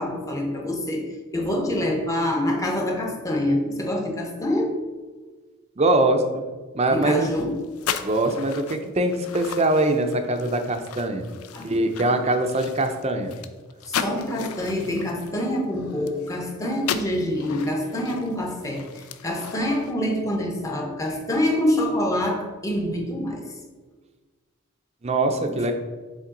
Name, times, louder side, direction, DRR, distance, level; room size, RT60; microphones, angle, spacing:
voice 1, 0.0-4.8 6.9-7.6 11.5-11.7 12.0-12.1 13.9-23.5 25.5-25.6, left 1 dB, 15° left, 1 dB, 0.8 m, -26 dB
voice 2, 5.8-6.4 6.7-7.3 8.0-11.3 11.6-13.4 25.0-25.7, right 2 dB, 30° right, 6 dB, 0.5 m, -22 dB
sound 1, 7.1-16.4 16.7-19.9, left 7 dB, 80° left, 0.4 m, -35 dB
7.3 x 3.6 x 3.8 m, 1.3 s
head